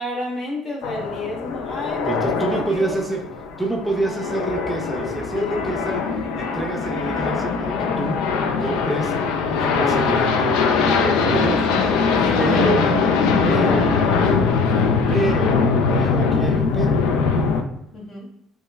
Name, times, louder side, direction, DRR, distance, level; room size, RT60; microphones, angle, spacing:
voice 1, 0.0-3.0 3.9-4.3 5.3-5.8 11.8-14.5 17.9-18.3, left 1 dB, 50° left, -1 dB, 1.2 m, -32 dB
sound 1, 0.8-17.6, left 5 dB, 80° left, 0.4 m, -21 dB
voice 2, 2.1-3.2 3.6-12.0 12.4-12.9 13.4-14.0 14.8-15.7 15.9-17.0, right 2 dB, 10° right, 1 dB, 0.5 m, -27 dB
5.2 x 2.2 x 2.3 m, 0.75 s
supercardioid pair, 80°, 0 cm